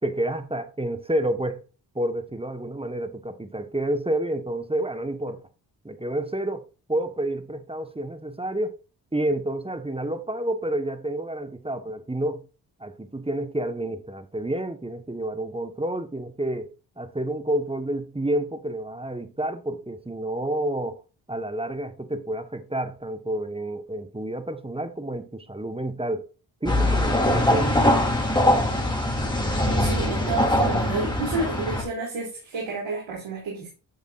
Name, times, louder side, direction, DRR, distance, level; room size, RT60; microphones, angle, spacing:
voice 1, 0.0-1.6 1.9-5.4 5.8-8.8 9.1-12.5 12.8-16.7 17.0-21.0 21.3-26.3 26.6-27.8, right 1 dB, 10° right, 1.3 m, -29 dB
sound 1, 26.7-31.8, left 1 dB, 10° left, 3.5 m, -22 dB
voice 2, 29.6-33.7, right 3 dB, 80° right, 3.2 m, -30 dB
9.8 x 7.1 x 2.6 m
cardioid pair, 50°, 46 cm